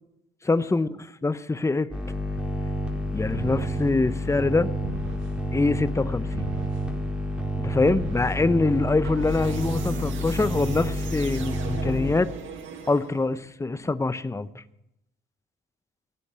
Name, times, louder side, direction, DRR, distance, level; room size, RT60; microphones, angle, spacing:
voice 1, 0.4-0.9 1.2-1.9 3.1-4.7 5.5-6.5 7.6-12.3 12.9-14.6, left 3 dB, 15° left, 14 dB, 0.7 m, -24 dB
sound 1, 1.9-12.1, equal, 5° right, 4.4 m, -29 dB
sound 2, 3.3-3.9 4.8-5.4 6.3-6.9 7.8-8.4 9.0-13.4, right 5 dB, 75° right, 1.8 m, -39 dB
16.5 x 8.5 x 7.5 m, 0.86 s
cardioid pair, 90°, 20 cm